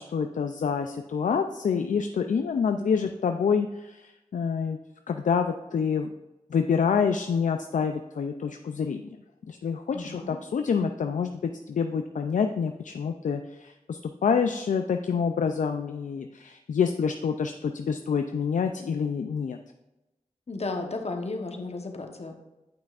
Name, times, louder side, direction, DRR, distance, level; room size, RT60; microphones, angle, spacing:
voice 1, 0.0-4.8 5.1-6.1 6.5-9.0 9.5-19.6, left 6 dB, 70° left, 6 dB, 0.4 m, -27 dB
voice 2, 9.9-10.4 20.5-22.3, left 3 dB, 50° left, 4 dB, 1.0 m, -34 dB
8.8 x 5.8 x 2.4 m, 1.0 s
cardioid pair, 40°, 13 cm